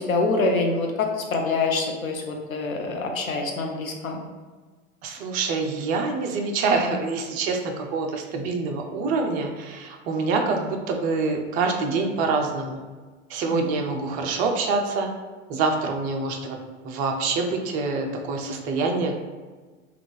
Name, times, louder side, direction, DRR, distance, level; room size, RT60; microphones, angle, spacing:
voice 1, 0.0-4.2, left 3 dB, 85° left, 2 dB, 0.7 m, -25 dB
voice 2, 5.0-12.8 13.3-15.1 15.5-16.6 16.8-19.1, right 4 dB, 25° right, 3 dB, 0.3 m, -26 dB
3.5 x 2.4 x 3.6 m, 1.4 s
figure-of-eight pair, 90°, 40 cm